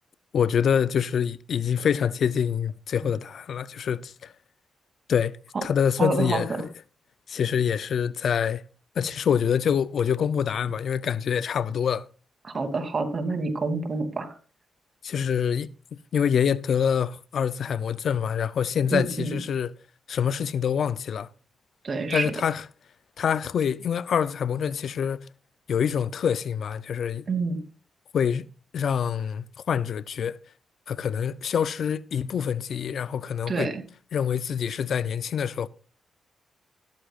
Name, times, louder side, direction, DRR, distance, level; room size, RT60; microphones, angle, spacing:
voice 1, 0.3-4.3 5.1-5.4 5.6-6.7 7.3-8.6 9.0-12.1 15.0-15.7 16.1-19.7 20.1-21.3 22.1-22.6 23.2-25.3 25.7-27.3 28.1-28.5 28.7-30.4 30.9-33.7 34.1-35.7, left 7 dB, 70° left, 0.6 m, -26 dB
voice 2, 6.0-6.4 12.4-14.3 18.9-19.4 21.8-22.3 27.3-27.6 33.5-33.8, right 3 dB, 50° right, 2.9 m, -27 dB
15.0 x 13.0 x 2.5 m
cardioid pair, 65°, 0 cm